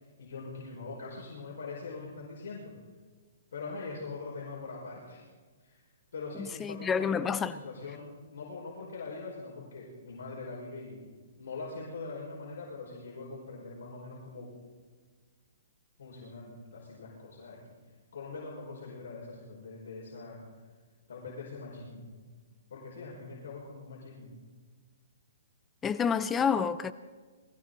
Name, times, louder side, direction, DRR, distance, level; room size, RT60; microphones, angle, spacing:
voice 1, 0.2-2.7 3.5-5.3 5.6-5.8 6.1-11.1 11.4-14.5 16.0-17.8 18.1-20.4 21.1-22.1 22.7-24.3, left 3 dB, 75° left, 5.6 m, -42 dB
voice 2, 6.4-7.5 25.8-26.9, left 6 dB, 10° left, 0.4 m, -29 dB
21.5 x 16.5 x 4.1 m
hypercardioid pair, 165°, 0 cm